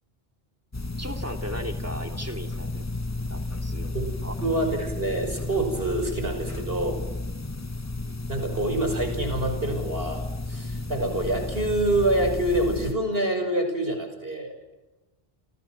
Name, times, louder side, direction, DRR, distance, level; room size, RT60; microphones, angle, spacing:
sound 1, 0.7-12.9, left 2 dB, 15° left, 0.8 m, -33 dB
voice 1, 1.0-2.8 3.3-4.0 4.2-4.3, equal, 15° right, 4 dB, 3.1 m, -37 dB
voice 2, 4.4-7.0 8.3-14.5, right 1 dB, 70° right, 5 dB, 6.4 m, -26 dB
29.0 x 28.5 x 6.2 m, 1.1 s
omnidirectional pair, 1.0 m